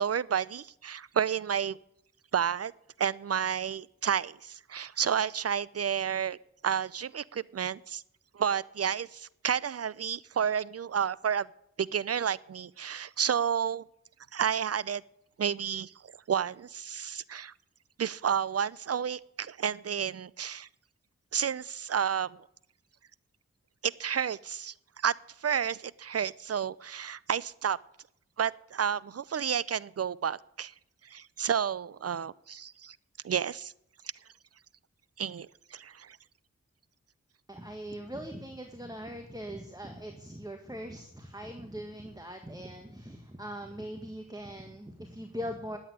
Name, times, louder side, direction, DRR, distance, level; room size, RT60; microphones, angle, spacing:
voice 1, 0.0-1.8 2.3-2.7 3.0-6.4 6.6-8.0 8.3-11.5 11.8-13.8 14.3-15.0 15.4-15.9 16.3-17.5 18.0-20.7 21.3-22.4 23.8-24.7 25.0-25.1 25.4-27.8 28.4-30.7 31.0-33.0 33.2-33.7 35.2-36.2, right 8 dB, 55° right, 0.5 m, -31 dB
voice 2, 37.5-45.8, equal, 15° right, 1.6 m, -41 dB
10.0 x 8.7 x 9.4 m
cardioid pair, 50°, 29 cm